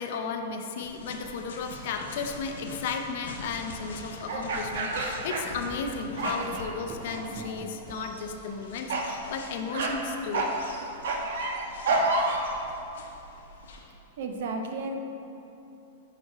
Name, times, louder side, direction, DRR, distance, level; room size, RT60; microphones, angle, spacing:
voice 1, 0.0-10.5, left 5 dB, 50° left, 5 dB, 0.5 m, -34 dB
sound 1, 0.8-13.8, left 2 dB, 85° left, 0.9 m, -45 dB
sound 2, 1.9-2.2 4.3-5.9 6.2-6.7 7.1-7.6 7.9-8.2 8.9-9.2 9.7-9.9 10.3-12.5, right 2 dB, 80° right, 0.9 m, -29 dB
sound 3, 4.5-8.9, right 3 dB, 20° right, 0.4 m, -46 dB
voice 2, 14.2-15.0, right 3 dB, 55° right, 4 dB, 0.7 m, -32 dB
5.9 x 5.4 x 4.9 m, 2.9 s
supercardioid pair, 175°, 0 cm